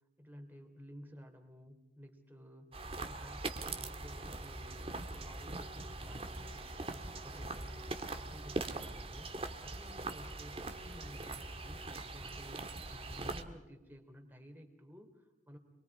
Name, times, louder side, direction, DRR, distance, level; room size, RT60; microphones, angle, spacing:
voice 1, 0.2-6.6 6.9-11.8 12.1-15.6, equal, 10° right, 3 dB, 3.1 m, -54 dB
sound 1, 2.7-13.4, right 2 dB, 30° right, 1.6 m, -42 dB
27.0 x 23.0 x 4.8 m, 1.1 s
head